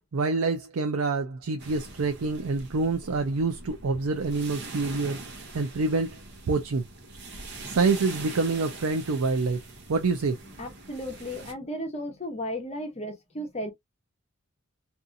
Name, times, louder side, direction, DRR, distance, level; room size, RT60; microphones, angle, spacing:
voice 1, 0.1-5.2 5.5-6.2 6.5-6.8 7.7-9.6 9.9-10.3, right 3 dB, 85° right, 0.5 m, -26 dB
sound 1, 1.6-11.5, right 2 dB, 55° right, 0.9 m, -43 dB
voice 2, 10.6-13.7, equal, 30° left, 0.9 m, -34 dB
2.7 x 2.4 x 2.6 m
head